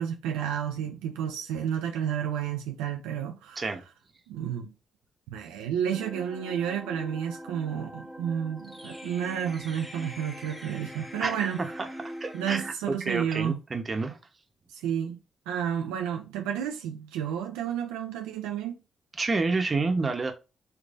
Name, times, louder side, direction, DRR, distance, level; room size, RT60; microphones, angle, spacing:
voice 1, 0.0-3.8 4.3-4.7 5.3-11.6 12.3-13.6 14.7-15.2 15.5-18.8, right 9 dB, 90° right, 0.4 m, -31 dB
sound 1, 5.9-12.7, equal, 5° left, 1.2 m, -42 dB
voice 2, 12.2-14.2 19.2-20.3, right 3 dB, 40° right, 0.9 m, -29 dB
3.2 x 3.2 x 2.5 m
supercardioid pair, 45°, 0 cm